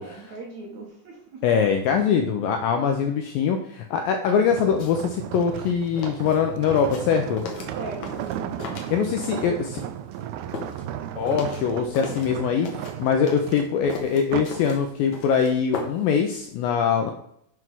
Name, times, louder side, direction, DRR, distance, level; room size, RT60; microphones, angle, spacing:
voice 1, 0.0-1.4 2.7-3.0 7.7-8.3, right 2 dB, 60° right, -1 dB, 2.0 m, -39 dB
voice 2, 1.4-7.4 8.9-9.8 11.2-17.1, left 7 dB, 80° left, 5 dB, 2.1 m, -23 dB
sound 1, 4.5-14.7 15.1-15.4, right 10 dB, 80° right, 2.2 m, -35 dB
sound 2, 4.8-5.1 5.4-9.5 9.8-12.4 12.6-16.2 16.4-16.5, left 4 dB, 60° left, 2.0 m, -37 dB
7.8 x 4.7 x 6.1 m, 0.71 s
omnidirectional pair, 4.7 m